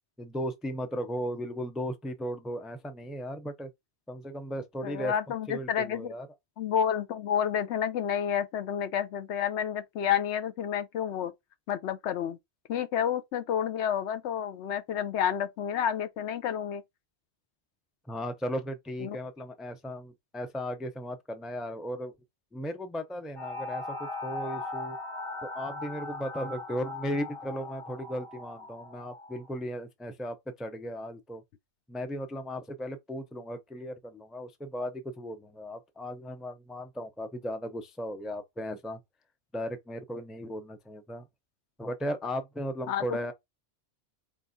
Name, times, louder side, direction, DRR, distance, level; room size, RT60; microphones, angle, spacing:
voice 1, 0.2-3.7 4.1-5.1 5.5-6.3 18.1-22.1 22.5-25.0 25.4-31.4 31.9-39.0 39.5-41.2 41.8-43.3, equal, ahead, 0.4 m, -36 dB
voice 2, 4.8-6.1 6.6-11.3 11.7-12.4 12.7-16.8 19.0-19.2 42.9-43.0, left 9 dB, 85° left, 0.9 m, -30 dB
sound 1, 23.4-29.5, left 2 dB, 30° left, 1.1 m, -39 dB
4.2 x 3.5 x 2.7 m
omnidirectional pair, 1.1 m